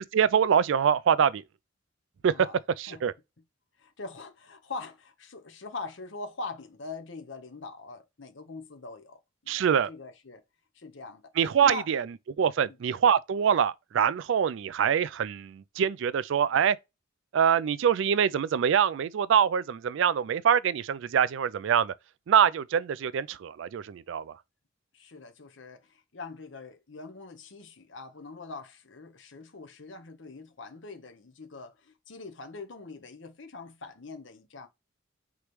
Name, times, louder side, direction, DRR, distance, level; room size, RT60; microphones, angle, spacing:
voice 1, 0.0-1.4 2.2-2.3 2.8-3.1 9.5-9.9 11.4-12.0 12.4-16.8 17.3-21.9 22.3-24.3, right 8 dB, 65° right, 0.3 m, -24 dB
voice 2, 3.8-10.4 10.7-11.2 11.5-11.9 12.6-12.8 24.9-34.7, left 3 dB, 65° left, 0.9 m, -43 dB
4.7 x 3.0 x 3.1 m
head